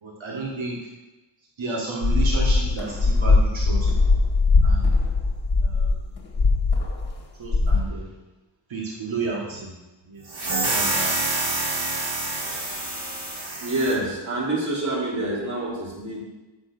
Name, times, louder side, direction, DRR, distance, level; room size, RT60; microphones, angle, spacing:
voice 1, 0.0-0.9 1.6-3.9 4.6-5.0 5.6-6.2 7.4-8.1 8.7-9.7 10.1-10.4 10.7-11.4, right 3 dB, 85° right, -3 dB, 1.8 m, -32 dB
sound 1, 2.0-7.2 7.4-7.8, left 3 dB, 55° left, 1.5 m, -20 dB
sound 2, 10.3-14.0, right 2 dB, 55° right, 2.3 m, -27 dB
voice 2, 13.6-16.2, right 2 dB, 40° right, -5 dB, 3.1 m, -27 dB
7.8 x 6.6 x 6.0 m, 1.1 s
wide cardioid pair, 120°, 45 cm